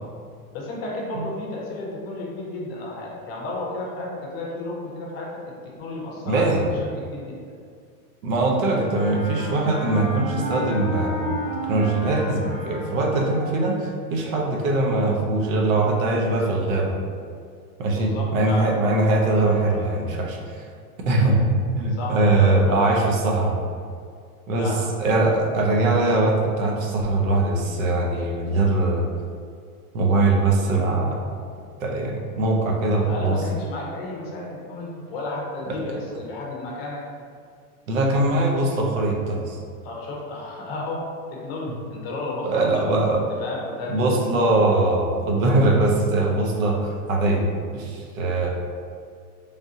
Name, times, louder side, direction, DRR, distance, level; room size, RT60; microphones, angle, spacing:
voice 1, 0.5-7.4 17.9-18.7 21.9-22.9 24.6-24.9 33.1-37.0 39.8-44.2, left 2 dB, 40° left, -2 dB, 0.7 m, -33 dB
voice 2, 6.2-6.7 8.2-11.4 11.7-17.0 17.8-20.7 21.1-21.4 21.8-23.6 24.5-24.7 25.0-29.1 29.9-31.2 31.8-33.4 35.7-35.8 37.9-39.6 42.4-43.2 43.9-48.5, right 2 dB, 60° right, 0 dB, 0.8 m, -21 dB
Wind instrument woodwind instrument, 8.6-13.9, right 1 dB, 5° right, 0.3 m, -31 dB
3.8 x 3.4 x 2.7 m, 2.2 s
supercardioid pair, 165°, 46 cm